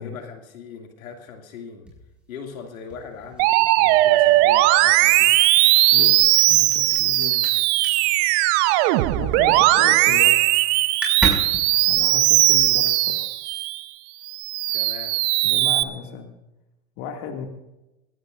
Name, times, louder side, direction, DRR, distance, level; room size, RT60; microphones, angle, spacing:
voice 1, 0.0-1.9 2.3-5.4 9.6-9.7 14.7-15.3, left 5 dB, 80° left, 3 dB, 2.5 m, -40 dB
sound 1, 1.8-9.5 9.8-10.3 10.5-10.6 10.8-13.2, right 1 dB, ahead, 5.9 m, -34 dB
Musical instrument, 3.4-13.8 14.3-15.8, right 18 dB, 50° right, 0.9 m, -18 dB
voice 2, 5.9-7.5 9.1-10.6 11.9-13.3 15.4-16.3 17.0-17.5, left 6 dB, 55° left, 3 dB, 2.3 m, -35 dB
21.0 x 17.0 x 2.5 m, 0.98 s
hypercardioid pair, 105°, 41 cm